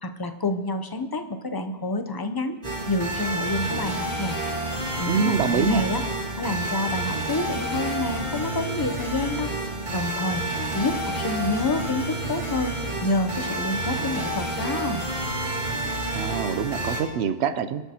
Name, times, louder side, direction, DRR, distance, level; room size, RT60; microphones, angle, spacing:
voice 1, 0.0-2.6 2.9-4.3 5.0-6.0 6.4-9.5 9.9-10.4 10.7-12.7 13.0-15.1, left 2 dB, 25° left, 7 dB, 0.5 m, -28 dB
sound 1, 2.6-17.0, right 1 dB, 40° right, 2.3 m, -29 dB
voice 2, 5.1-5.8 16.1-17.8, right 6 dB, 70° right, 13 dB, 0.8 m, -25 dB
20.5 x 8.1 x 2.9 m, 1.4 s
omnidirectional pair, 1.2 m